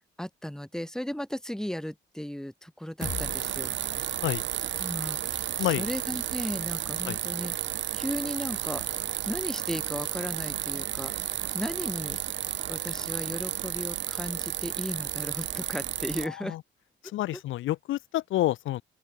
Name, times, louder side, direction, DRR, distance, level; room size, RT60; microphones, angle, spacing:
voice 1, 0.0-3.7 4.8-7.5 7.9-8.8 9.3-12.2 12.7-16.6 17.3-17.4, equal, 5° left, 2.4 m, -36 dB
sound 1, 3.0-6.9, left 6 dB, 40° left, 2.9 m, -44 dB
sound 2, 3.0-16.3, right 11 dB, 65° right, 1.2 m, -32 dB
sound 3, 3.9-13.9, right 16 dB, 90° right, 3.6 m, -53 dB
voice 2, 17.1-18.8, left 15 dB, 80° left, 0.9 m, -28 dB
open air
cardioid pair, 90°, 20 cm